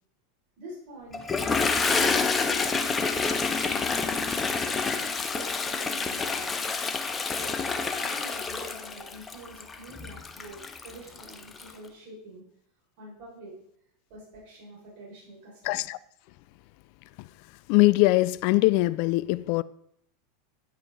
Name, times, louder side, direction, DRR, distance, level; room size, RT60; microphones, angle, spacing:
voice 1, 0.6-1.2 1.8-3.2 3.6-6.6 7.3-12.4 13.0-13.5 14.1-15.8, right 1 dB, 50° right, 4.5 m, -46 dB
Toilet flush, 1.1-11.7, left 4 dB, 20° left, 1.0 m, -28 dB
voice 2, 15.6-16.0 17.2-17.3 17.7-19.6, left 19 dB, 55° left, 0.3 m, -22 dB
9.9 x 8.9 x 3.6 m
figure-of-eight pair, 85°, 0 cm